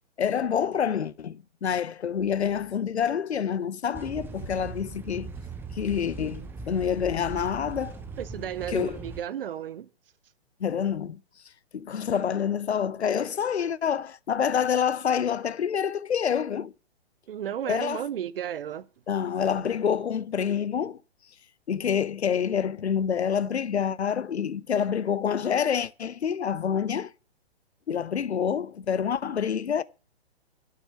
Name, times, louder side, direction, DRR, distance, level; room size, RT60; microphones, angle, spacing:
voice 1, 0.2-5.3 5.7-8.0 8.7-9.0 10.6-11.2 11.7-16.7 17.7-18.0 19.1-21.0 21.7-27.1 27.9-29.8, left 8 dB, 80° left, 0.7 m, -27 dB
sound 1, 3.9-9.2, right 4 dB, 5° right, 0.6 m, -39 dB
voice 2, 8.2-9.9 17.3-18.9, right 10 dB, 60° right, 0.8 m, -33 dB
8.3 x 7.8 x 8.3 m
figure-of-eight pair, 125°, 33 cm